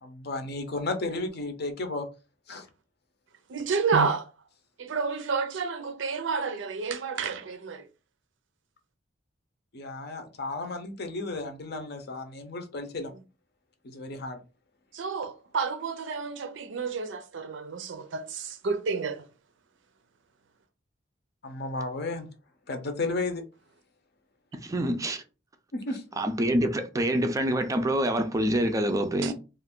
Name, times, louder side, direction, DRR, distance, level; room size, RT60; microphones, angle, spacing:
voice 1, 0.0-2.1 2.5-2.7 9.7-13.1 13.8-14.4 21.4-22.3 22.7-23.4 25.7-26.0, left 2 dB, 55° left, 0.6 m, -33 dB
voice 2, 3.5-4.3 4.8-7.8 14.9-19.3 29.2-29.3, right 5 dB, 75° right, 0.5 m, -30 dB
voice 3, 24.6-25.2 26.2-29.3, right 1 dB, 15° right, 0.4 m, -26 dB
2.5 x 2.4 x 3.6 m
head